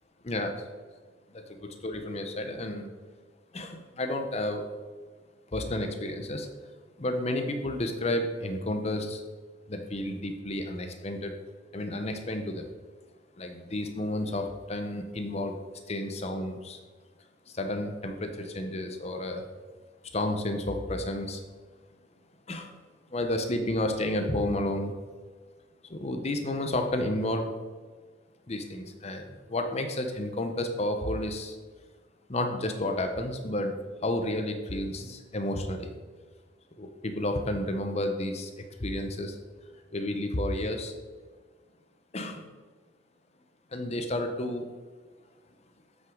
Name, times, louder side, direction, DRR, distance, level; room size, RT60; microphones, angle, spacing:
voice 1, 0.2-0.6 1.3-2.9 3.5-4.7 5.5-6.5 7.0-9.2 9.7-11.3 11.7-12.7 13.4-15.6 15.9-16.8 17.5-19.4 20.1-21.4 22.5-22.7 23.1-24.9 25.9-27.5 28.5-31.6 32.3-33.8 34.0-35.9 36.8-39.4 39.9-40.9 42.1-42.4 43.7-44.6, left 1 dB, 30° left, 5 dB, 0.7 m, -31 dB
8.1 x 5.9 x 3.8 m, 1.5 s
head